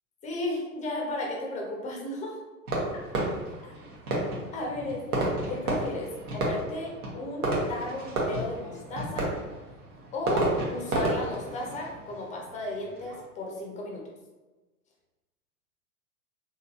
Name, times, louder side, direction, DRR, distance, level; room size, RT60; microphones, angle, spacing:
voice 1, 0.2-2.4 2.9-3.0 4.5-9.3 10.1-14.0, left 2 dB, 15° left, -1 dB, 0.6 m, -34 dB
Fireworks, 2.7-13.2, right 1 dB, 75° right, 1.1 m, -32 dB
3.2 x 2.8 x 2.4 m, 1.2 s
hypercardioid pair, 105°, 45 cm